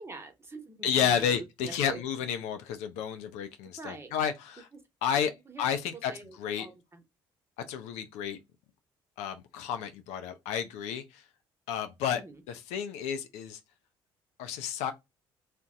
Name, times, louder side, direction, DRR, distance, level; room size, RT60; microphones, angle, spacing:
voice 1, 0.0-2.0 3.7-4.1 5.1-5.7 6.1-7.0 12.1-12.4, right 3 dB, 20° right, 1.0 m, -45 dB
voice 2, 0.8-4.7 5.0-5.3 5.6-6.1 6.4-6.7 7.7-8.4 9.2-11.2 11.7-12.2 12.5-13.6 14.4-14.9, left 8 dB, 70° left, 0.5 m, -31 dB
2.6 x 2.1 x 3.6 m
hypercardioid pair, 50°, 12 cm